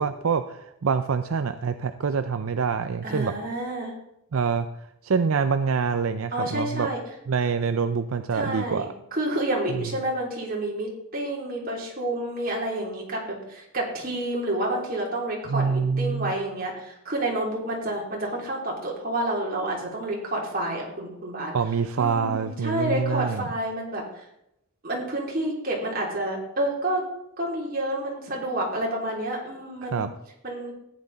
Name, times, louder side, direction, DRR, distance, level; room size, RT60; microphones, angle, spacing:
voice 1, 0.0-3.3 4.3-4.7 5.0-6.9 7.3-8.9 15.5-16.4 21.5-23.5 29.8-30.1, right 5 dB, 75° right, 9 dB, 0.5 m, -25 dB
voice 2, 3.0-3.9 6.3-7.0 8.3-21.5 22.0-24.3 24.8-27.0 27.4-30.0 30.4-30.7, right 1 dB, 45° right, -2 dB, 3.4 m, -29 dB
14.5 x 9.9 x 4.1 m, 0.82 s
head